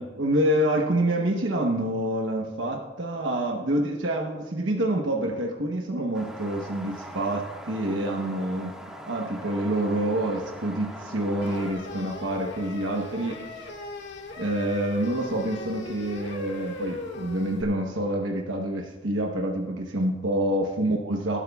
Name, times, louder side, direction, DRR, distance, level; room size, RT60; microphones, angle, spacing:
voice 1, 0.0-8.8 9.1-13.5 14.4-21.4, right 1 dB, 80° right, 1 dB, 1.0 m, -27 dB
sound 1, 6.1-11.7, equal, 5° right, 1.5 m, -41 dB
sound 2, 11.4-17.6, left 2 dB, 70° left, 1.8 m, -39 dB
19.0 x 12.5 x 2.3 m, 1.3 s
head